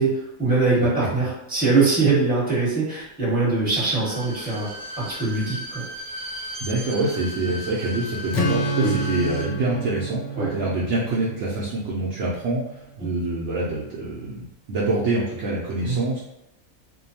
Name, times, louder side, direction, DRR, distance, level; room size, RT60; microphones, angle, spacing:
voice 1, 0.0-4.7 5.0-5.8 8.8-8.9 10.4-10.5 13.0-13.1 15.8-16.0, right 3 dB, 5° right, -8 dB, 0.9 m, -22 dB
Bowed string instrument, 3.9-9.5 9.8-9.9, left 1 dB, 85° right, 1.1 m, -36 dB
voice 2, 6.6-16.2, right 2 dB, 65° right, -7 dB, 0.8 m, -26 dB
Strum, 8.3-12.4, right 1 dB, 65° left, 0.8 m, -29 dB
2.6 x 2.2 x 2.7 m, 0.88 s
omnidirectional pair, 1.5 m